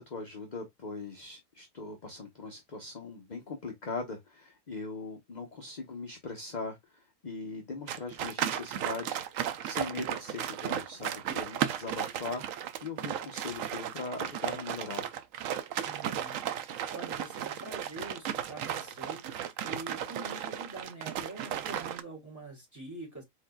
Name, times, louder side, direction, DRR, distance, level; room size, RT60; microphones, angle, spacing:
voice 1, 0.0-9.3 9.6-15.1, left 4 dB, 35° left, 0.8 m, -40 dB
sound 1, 7.9-22.0, right 10 dB, 70° right, 1.0 m, -35 dB
voice 2, 15.9-16.4 16.9-23.2, right 2 dB, 10° right, 3.0 m, -45 dB
4.6 x 4.4 x 2.3 m
omnidirectional pair, 1.5 m